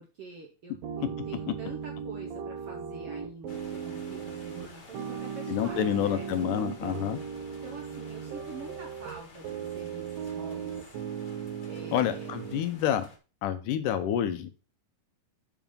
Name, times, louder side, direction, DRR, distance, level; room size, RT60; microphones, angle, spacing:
voice 1, 0.0-6.3 7.6-10.9 11.6-12.3, right 4 dB, 65° right, 1 dB, 1.5 m, -46 dB
sound 1, 0.8-12.6, right 7 dB, 85° right, 2.8 m, -37 dB
sound 2, 3.5-13.2, left 3 dB, 45° left, 1.5 m, -52 dB
voice 2, 5.5-7.2 11.9-13.1 13.4-14.5, left 10 dB, 80° left, 10 dB, 2.1 m, -28 dB
7.2 x 6.0 x 5.4 m, 0.34 s
omnidirectional pair, 4.0 m